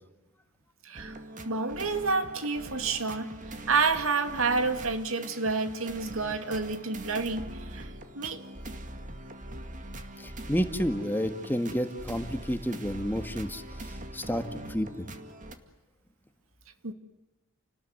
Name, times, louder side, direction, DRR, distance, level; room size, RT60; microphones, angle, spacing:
voice 1, 0.8-1.2 1.4-3.3 3.7-8.4 16.8-16.9, right 4 dB, 80° right, 8 dB, 2.4 m, -29 dB
sound 1, 0.9-15.5, right 1 dB, 35° right, 2.2 m, -42 dB
voice 2, 10.2-13.6 14.1-14.4 14.7-15.1, equal, 10° left, 8 dB, 1.6 m, -30 dB
30.0 x 19.5 x 9.6 m, 1.1 s
head